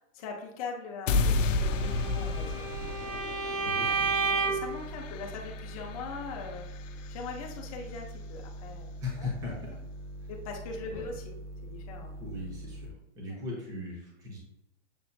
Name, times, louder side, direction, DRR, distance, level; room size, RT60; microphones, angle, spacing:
voice 1, 0.0-2.7 3.5-3.6 3.9-6.7 7.1-9.3 9.6-9.7 10.3-12.1, left 4 dB, 30° left, 1 dB, 0.6 m, -41 dB
sound 1, 1.1-7.2, left 3 dB, 90° left, 0.5 m, -32 dB
Bowed string instrument, 1.7-4.8, right 4 dB, 45° right, 0.9 m, -31 dB
voice 2, 3.6-4.1 9.0-9.5 10.9-11.1 12.2-12.9 13.1-14.4, left 3 dB, 10° right, -4 dB, 0.6 m, -38 dB
sound 2, 3.8-12.9, right 1 dB, 70° right, 1.3 m, -43 dB
6.8 x 2.4 x 2.6 m, 0.89 s
hypercardioid pair, 165°, 37 cm